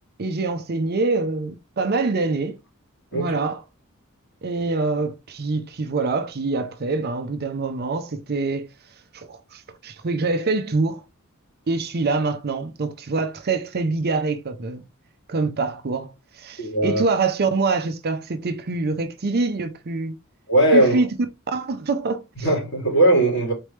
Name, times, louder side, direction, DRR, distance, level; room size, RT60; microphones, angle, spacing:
voice 1, 0.2-2.6 3.1-3.6 4.4-8.7 9.1-11.0 11.7-14.8 15.3-20.2 20.7-21.1 21.5-22.2, right 3 dB, 45° right, 0.6 m, -25 dB
voice 2, 16.6-17.0 20.5-21.1 22.4-23.5, right 1 dB, 55° left, 2.8 m, -19 dB
4.2 x 3.3 x 3.2 m
head